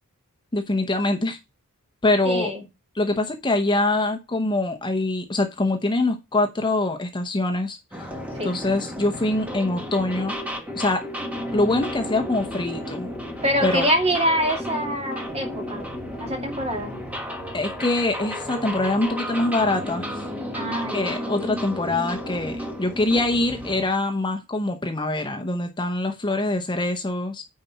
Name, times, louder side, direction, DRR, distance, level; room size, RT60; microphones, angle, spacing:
voice 1, 0.5-1.4 2.0-2.5 2.9-7.8 8.4-10.4 10.7-11.0 11.5-13.1 13.6-13.9 17.5-20.2 20.9-27.4, left 2 dB, 20° left, 0.8 m, -24 dB
voice 2, 2.2-2.6 8.4-8.6 13.4-15.9 16.2-17.0 20.5-21.2, equal, 30° right, 2.3 m, -25 dB
sound 1, 7.9-23.8, equal, 5° right, 1.5 m, -33 dB
9.6 x 4.2 x 5.6 m
head